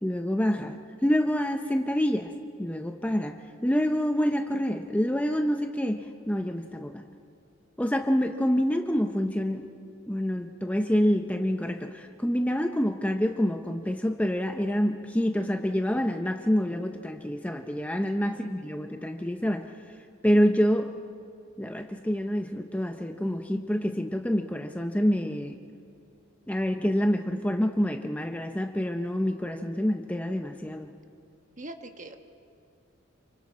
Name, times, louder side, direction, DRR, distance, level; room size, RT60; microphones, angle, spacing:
voice 1, 0.0-2.3 2.6-3.4 3.6-7.0 7.8-9.7 10.1-19.7 20.2-20.9 21.6-25.5 26.5-30.9, equal, 5° left, 6 dB, 0.6 m, -27 dB
voice 2, 18.2-18.7 31.6-32.2, right 1 dB, 35° right, 6 dB, 1.3 m, -43 dB
28.5 x 25.5 x 4.2 m, 2.5 s
head